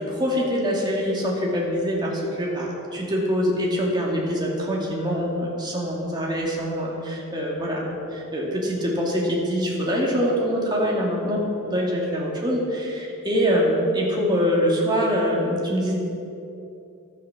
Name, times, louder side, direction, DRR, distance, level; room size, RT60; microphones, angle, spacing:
voice 1, 0.0-11.4 11.7-16.0, equal, 20° right, -3 dB, 2.5 m, -24 dB
12.5 x 9.8 x 7.1 m, 2.7 s
head